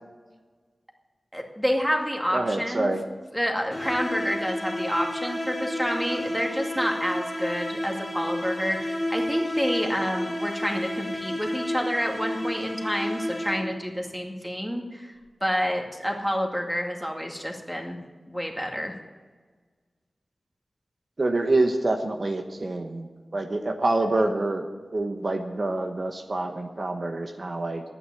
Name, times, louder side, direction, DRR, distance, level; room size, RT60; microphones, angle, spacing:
voice 1, 1.3-2.9 3.3-15.1 15.4-18.0 18.3-18.9, equal, ahead, 2 dB, 2.2 m, -29 dB
voice 2, 2.3-3.0 21.2-27.8, right 2 dB, 55° right, 4 dB, 1.1 m, -26 dB
sound 1, 3.7-13.9, left 1 dB, 20° left, 3.2 m, -31 dB
11.0 x 9.5 x 9.7 m, 1.4 s
wide cardioid pair, 70°, 0 cm